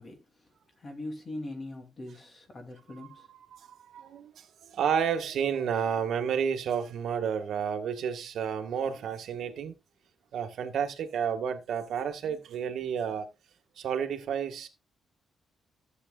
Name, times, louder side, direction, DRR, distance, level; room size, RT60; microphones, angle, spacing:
voice 1, 0.0-3.3, left 1 dB, 30° left, 2.8 m, -42 dB
voice 2, 3.5-9.7 10.3-13.3 13.8-14.7, right 7 dB, 65° right, 1.7 m, -31 dB
15.0 x 8.1 x 2.4 m
cardioid pair, 155°, 0 cm